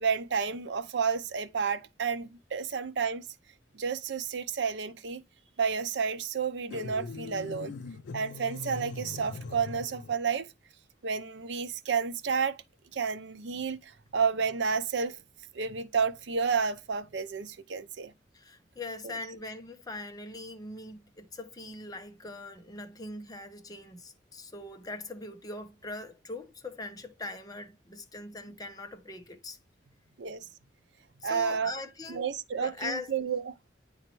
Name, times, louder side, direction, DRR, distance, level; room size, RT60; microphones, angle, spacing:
voice 1, 0.0-3.3 3.7-5.2 5.6-7.7 8.1-10.5 11.0-12.6 12.9-15.2 15.5-18.1 19.0-19.1 30.2-30.4 31.2-31.7 32.1-33.5, right 6 dB, 70° right, 0.6 m, -31 dB
sound 1, 6.7-10.2, left 4 dB, 70° left, 0.4 m, -41 dB
voice 2, 18.3-29.6 31.2-32.2 32.6-33.2, left 2 dB, 20° left, 0.8 m, -41 dB
9.0 x 4.0 x 3.0 m
head